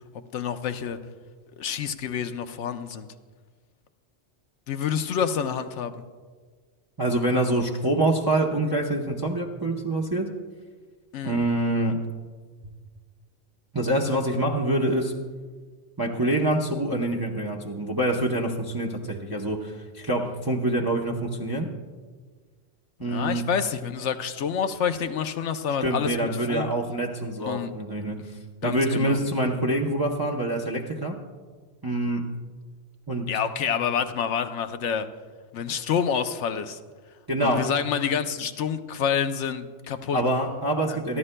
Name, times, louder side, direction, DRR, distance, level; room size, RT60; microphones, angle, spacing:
voice 1, 0.3-1.0 1.6-3.1 4.7-6.0 11.1-11.4 23.1-26.7 27.4-27.7 28.6-29.2 33.3-35.1 35.5-36.8 37.4-40.2 40.9-41.0, left 7 dB, 80° left, 9 dB, 1.0 m, -28 dB
voice 2, 7.0-10.3 11.2-12.0 13.7-15.2 16.0-21.7 23.0-23.4 25.8-28.2 28.6-31.2 31.8-32.3 33.1-33.3 37.3-37.7 40.1-41.2, right 1 dB, 20° right, -1 dB, 0.7 m, -26 dB
28.0 x 11.0 x 2.2 m, 1.5 s
omnidirectional pair, 1.2 m